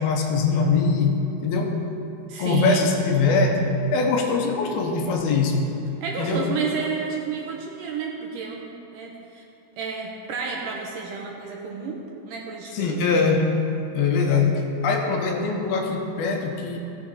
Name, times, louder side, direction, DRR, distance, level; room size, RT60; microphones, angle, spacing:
voice 1, 0.0-1.8 2.4-5.7 6.2-6.5 12.7-13.5 13.9-16.8, left 4 dB, 80° left, 2 dB, 2.7 m, -22 dB
voice 2, 2.3-2.9 6.0-9.4 9.8-13.1, right 5 dB, 70° right, -1 dB, 2.2 m, -31 dB
15.5 x 7.0 x 4.1 m, 2.7 s
omnidirectional pair, 4.5 m